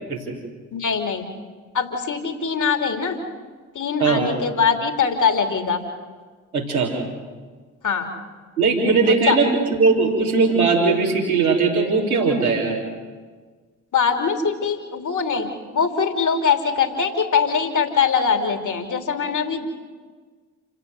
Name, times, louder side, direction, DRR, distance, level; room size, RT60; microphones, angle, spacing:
voice 1, 0.7-1.3 1.7-3.2 3.7-5.8 7.8-8.1 9.1-9.4 13.9-19.7, left 6 dB, 45° left, 5 dB, 3.2 m, -22 dB
voice 2, 4.0-4.3 6.5-6.9 8.6-9.5 9.8-12.8, right 4 dB, 90° right, -3 dB, 3.3 m, -19 dB
28.5 x 16.5 x 7.8 m, 1.5 s
figure-of-eight pair, 40°, 42 cm